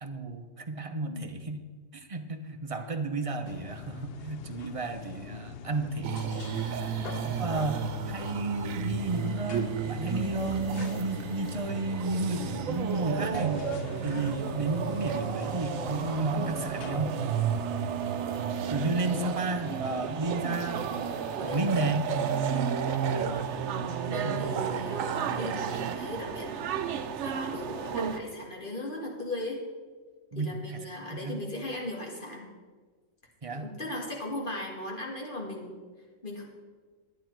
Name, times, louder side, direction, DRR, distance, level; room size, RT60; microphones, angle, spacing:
voice 1, 0.0-1.6 1.9-6.3 7.3-7.8 8.1-13.6 14.0-17.2 18.7-20.9 21.4-22.1 24.2-24.5 30.3-30.8 31.1-31.4 33.4-33.7, right 2 dB, 30° right, 6 dB, 0.7 m, -32 dB
sound 1, 3.4-17.0, left 9 dB, 65° left, 0.6 m, -43 dB
sound 2, 6.0-25.9, right 7 dB, 90° right, 1.1 m, -33 dB
voice 2, 6.7-7.2 14.1-14.3 19.0-19.2 21.4-22.0 22.8-23.4 23.9-26.6 27.2-29.6 30.3-32.5 33.5-35.8 36.2-36.4, left 1 dB, 40° left, -1 dB, 2.1 m, -38 dB
sound 3, 9.0-28.2, right 8 dB, 65° right, 0.9 m, -37 dB
11.5 x 9.9 x 4.6 m, 1.4 s
omnidirectional pair, 1.3 m